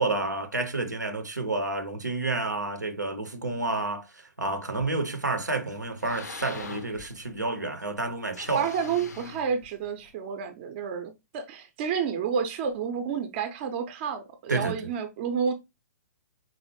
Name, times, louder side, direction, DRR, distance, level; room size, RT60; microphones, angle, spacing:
voice 1, 0.0-8.7 14.5-14.8, right 3 dB, 85° right, 0.6 m, -30 dB
sound 1, 4.7-5.4 5.8-7.6 8.3-10.1, left 4 dB, 70° left, 0.5 m, -43 dB
voice 2, 8.5-15.5, right 7 dB, 35° right, 0.5 m, -30 dB
4.1 x 2.0 x 2.9 m
figure-of-eight pair, 115°, 9 cm